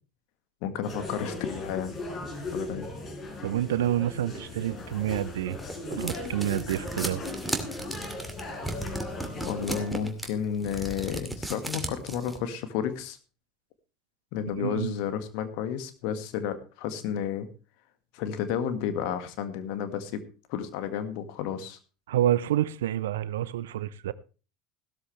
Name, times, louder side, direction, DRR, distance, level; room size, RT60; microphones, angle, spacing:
voice 1, 0.6-2.0 2.5-2.9 9.5-13.2 14.3-17.5 18.1-20.2 20.5-21.8, left 8 dB, 60° left, 1.8 m, -32 dB
sound 1, 0.8-9.9, left 2 dB, 35° left, 4.9 m, -38 dB
voice 2, 3.4-5.6 5.9-7.2 14.5-14.9 22.1-24.1, right 12 dB, 70° right, 0.6 m, -28 dB
sound 2, 5.1-12.4, right 1 dB, 5° right, 2.4 m, -35 dB
15.5 x 13.0 x 3.2 m
figure-of-eight pair, 75°, 0 cm